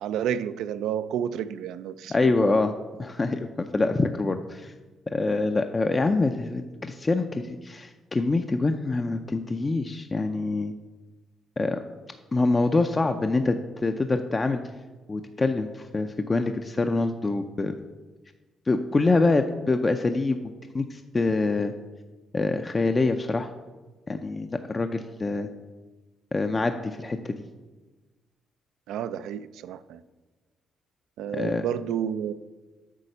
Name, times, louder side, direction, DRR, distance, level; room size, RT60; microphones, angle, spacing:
voice 1, 0.0-2.6 28.9-30.0 31.2-32.3, right 9 dB, 85° right, 14 dB, 0.3 m, -30 dB
voice 2, 2.1-2.7 3.0-4.7 5.1-10.7 11.6-11.8 12.3-14.6 15.1-17.7 18.7-20.4 20.7-21.7 22.3-23.5 24.1-25.5 26.3-27.4 31.4-31.6, left 3 dB, 25° left, 7 dB, 0.4 m, -25 dB
8.3 x 4.1 x 6.6 m, 1.2 s
cardioid pair, 90°, 0 cm